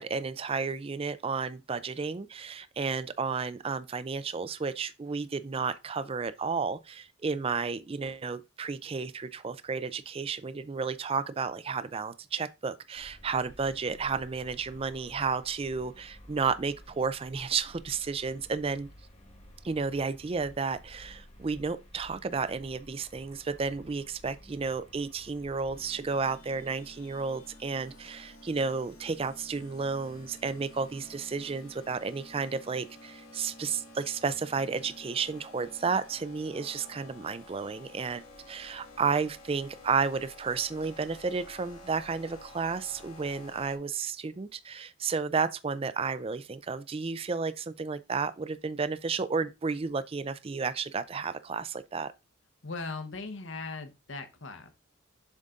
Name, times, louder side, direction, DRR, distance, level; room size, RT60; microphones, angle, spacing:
voice 1, 0.0-18.9 19.6-52.1, right 5 dB, 25° right, 0.4 m, -32 dB
sound 1, 12.9-25.9, equal, 30° left, 1.5 m, -53 dB
sound 2, 25.7-43.8, left 1 dB, 90° left, 1.7 m, -51 dB
voice 2, 52.6-54.7, left 3 dB, 60° left, 1.1 m, -39 dB
7.2 x 3.9 x 3.8 m
head